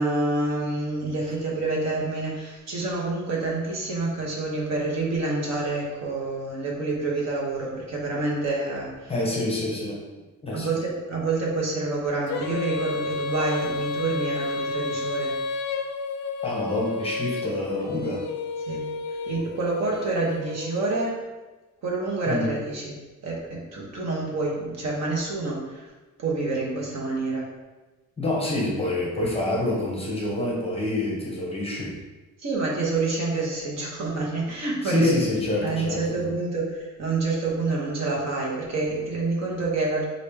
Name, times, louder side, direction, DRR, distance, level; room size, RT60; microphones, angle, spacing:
voice 1, 0.0-9.1 10.5-15.4 18.7-18.9 19.3-21.2 21.8-23.0 23.2-25.9 26.2-27.5 32.4-35.2 35.6-40.1, right 3 dB, 60° right, -3 dB, 1.1 m, -27 dB
voice 2, 9.1-10.0 10.4-10.7 16.4-18.3 22.3-22.5 28.2-32.0 34.8-36.3, left 2 dB, 20° left, -3 dB, 0.7 m, -27 dB
Female singing, 12.3-21.1, left 3 dB, 60° left, 0.4 m, -31 dB
4.8 x 2.6 x 3.4 m, 1.2 s
cardioid pair, 160°, 31 cm